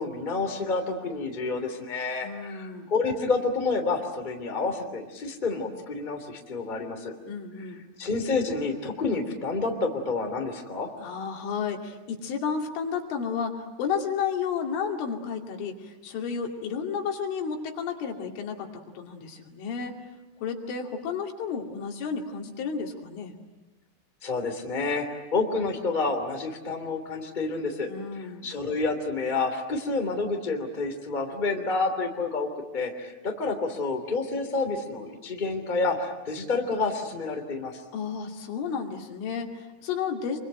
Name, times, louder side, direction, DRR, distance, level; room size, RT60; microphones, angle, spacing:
voice 1, 0.0-7.1 8.0-10.9 24.2-27.9 28.4-37.8, left 3 dB, 15° left, 4 dB, 2.2 m, -29 dB
voice 2, 2.2-2.9 7.3-7.9 11.0-19.9 20.4-23.4 27.9-28.5 37.9-40.4, left 6 dB, 85° left, 2 dB, 5.1 m, -32 dB
27.5 x 24.0 x 9.0 m, 1.1 s
omnidirectional pair, 5.4 m